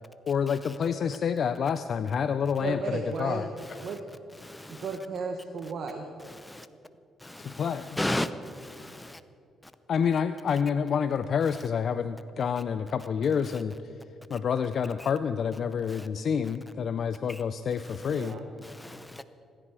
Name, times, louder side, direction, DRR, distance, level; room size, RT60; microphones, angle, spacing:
voice 1, 0.3-3.5 7.4-8.0 9.9-14.0 14.3-18.4, left 7 dB, 55° left, 11 dB, 0.4 m, -28 dB
voice 2, 2.6-3.5 3.8-4.0 4.7-6.0 8.1-8.2 18.1-18.5, right 4 dB, 65° right, 3 dB, 1.2 m, -34 dB
voice 3, 4.4-4.8 6.5-6.6 7.2-7.6 8.0-8.3 8.6-9.2 18.8-19.2, left 1 dB, 10° left, 12 dB, 0.6 m, -33 dB
24.0 x 10.0 x 4.8 m, 2.5 s
cardioid pair, 90°, 0 cm